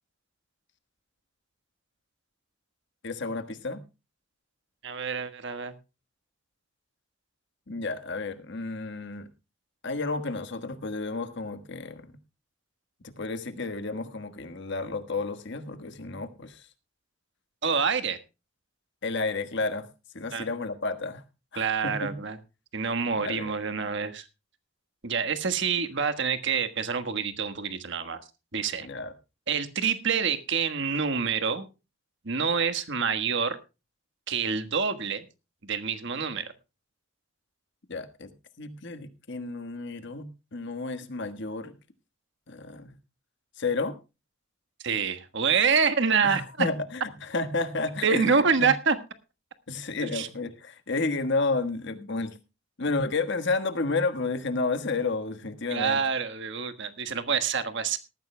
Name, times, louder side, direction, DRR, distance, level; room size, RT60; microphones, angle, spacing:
voice 1, 3.0-3.8 7.7-9.3 9.8-12.2 13.0-16.6 19.0-19.9 20.1-21.2 21.5-22.1 23.1-23.5 28.8-29.1 37.9-38.3 38.6-41.7 42.5-42.9 43.6-44.0 46.2-48.7 49.7-52.4 52.8-56.0, left 3 dB, 60° left, 10 dB, 1.4 m, -31 dB
voice 2, 4.8-5.7 17.6-18.2 20.3-20.5 21.6-22.4 22.7-24.3 25.0-28.2 28.5-28.9 29.5-31.7 32.2-33.6 34.3-35.2 35.6-36.5 44.8-46.7 48.0-49.0 50.0-50.3 55.7-58.0, right 5 dB, 65° right, 10 dB, 1.4 m, -27 dB
18.5 x 14.0 x 2.2 m, 0.28 s
head